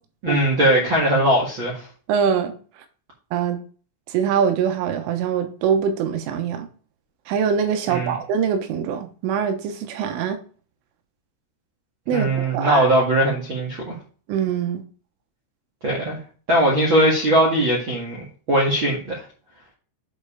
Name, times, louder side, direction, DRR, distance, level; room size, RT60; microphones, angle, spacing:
voice 1, 0.2-1.8 7.9-8.1 12.1-13.9 15.8-16.2 16.5-19.2, right 1 dB, 60° right, 1.3 m, -20 dB
voice 2, 2.1-2.5 3.3-3.6 4.1-6.7 7.3-10.4 12.1-12.9 14.3-14.8, right 7 dB, 85° right, 3.6 m, -23 dB
7.9 x 5.5 x 4.9 m
omnidirectional pair, 5.6 m